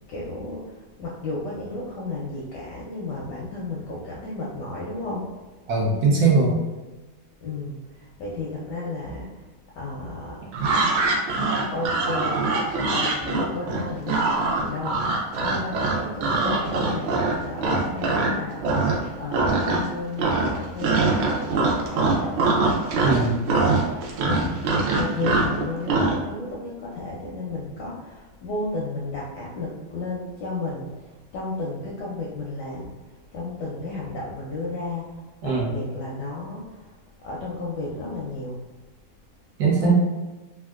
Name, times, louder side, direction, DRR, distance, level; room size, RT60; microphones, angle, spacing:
voice 1, 0.1-5.3 7.4-9.3 9.8-10.5 11.7-12.4 12.9-22.7 24.2-24.6 24.9-32.9 33.3-36.9 37.2-38.6 39.8-39.9, left 2 dB, 75° left, -4 dB, 1.0 m, -33 dB
voice 2, 5.7-6.6 23.0-23.4 35.4-35.7 39.6-39.9, right 4 dB, 65° right, -4 dB, 1.0 m, -20 dB
sound 1, 10.5-18.3 18.6-19.1 19.3-19.9 20.2-26.2, right 3 dB, 85° right, 1.4 m, -23 dB
3.6 x 2.2 x 2.3 m, 1.2 s
omnidirectional pair, 2.2 m